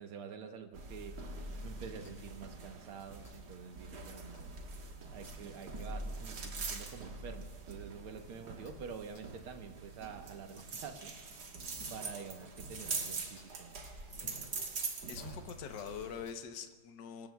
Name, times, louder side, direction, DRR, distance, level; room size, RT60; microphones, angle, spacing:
voice 1, 0.0-4.5 5.1-11.5 11.9-13.8, right 6 dB, 80° right, 5 dB, 1.9 m, -48 dB
sound 1, 0.7-16.3, right 3 dB, 50° right, 1.8 m, -44 dB
sound 2, 1.6-16.7, right 1 dB, 10° right, 5.9 m, -61 dB
sound 3, 2.0-2.2 3.0-3.4 4.3-4.5 5.8-5.9 6.9-7.0 7.7-7.8 8.6-8.8 9.1-9.3 10.0-10.1 10.6-10.7 11.0-12.0 12.8-12.9 13.4-13.5 13.8-14.0 14.3-14.4 14.8-14.9 15.3-15.4 15.8-15.9 16.3-16.4, left 2 dB, 90° left, 5.6 m, -62 dB
voice 2, 15.1-17.3, left 7 dB, 60° left, 6 dB, 1.4 m, -44 dB
26.0 x 19.5 x 2.3 m, 1.5 s
omnidirectional pair, 2.4 m